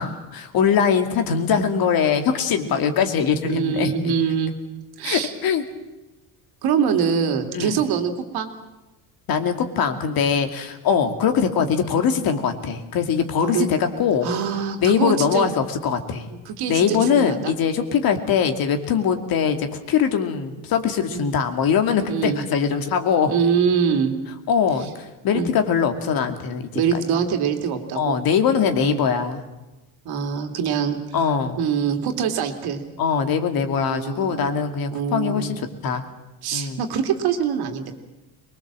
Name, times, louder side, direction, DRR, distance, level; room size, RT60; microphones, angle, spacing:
voice 1, 0.0-4.1 5.0-5.6 7.5-7.8 9.3-14.3 14.8-16.3 16.7-23.3 24.5-27.0 27.9-29.4 31.1-31.6 33.0-36.1 36.5-36.8, left 7 dB, 65° left, 7 dB, 2.5 m, -22 dB
voice 2, 3.4-4.5 5.0-5.3 6.6-8.5 10.9-11.1 13.4-13.7 14.2-15.5 16.3-17.5 21.1-21.3 22.1-22.4 23.2-24.1 25.3-25.5 26.7-28.2 28.6-29.0 30.0-31.0 31.6-32.8 33.7-34.5 34.9-35.5 36.4-37.9, right 7 dB, 75° right, 6 dB, 2.7 m, -24 dB
23.0 x 21.0 x 7.6 m, 1.1 s
cardioid pair, 115°, 39 cm